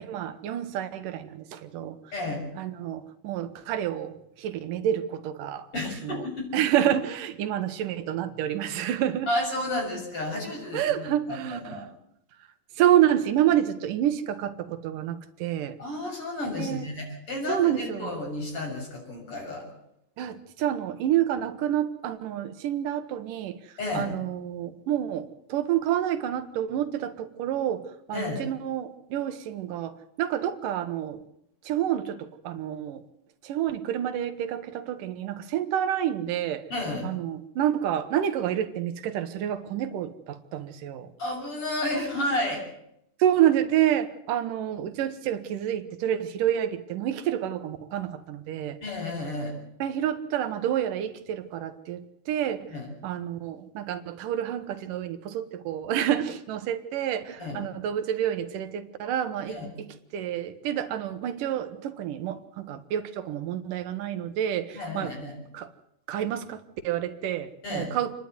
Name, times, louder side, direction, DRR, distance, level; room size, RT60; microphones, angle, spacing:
voice 1, 0.0-2.0 2.6-5.7 6.0-6.1 6.5-9.3 10.7-11.9 12.8-15.8 16.6-16.9 17.5-18.1 20.2-23.6 23.9-31.2 31.6-33.0 33.4-36.6 37.0-41.1 43.2-48.8 49.8-52.7 53.0-65.1 65.5-65.7 66.1-68.1, right 11 dB, 90° right, 10 dB, 2.8 m, -28 dB
voice 2, 2.1-2.5 5.7-6.5 9.3-11.9 15.8-19.7 23.8-24.1 28.1-28.4 36.7-37.1 41.2-42.7 48.8-49.6 52.7-52.9 57.4-57.6 59.5-59.7 64.7-65.4 67.6-67.9, left 1 dB, 45° left, 0 dB, 7.6 m, -32 dB
28.0 x 11.0 x 9.5 m, 0.78 s
omnidirectional pair, 3.6 m